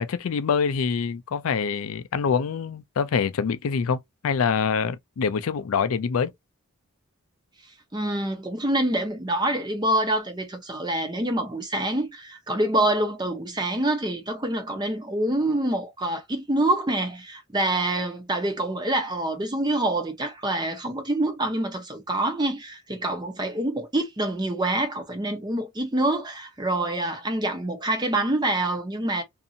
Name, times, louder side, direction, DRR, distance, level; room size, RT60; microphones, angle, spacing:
voice 1, 0.0-6.3, left 6 dB, 80° left, 0.4 m, -25 dB
voice 2, 7.9-29.2, right 1 dB, 20° right, 0.7 m, -26 dB
2.7 x 2.6 x 2.4 m
head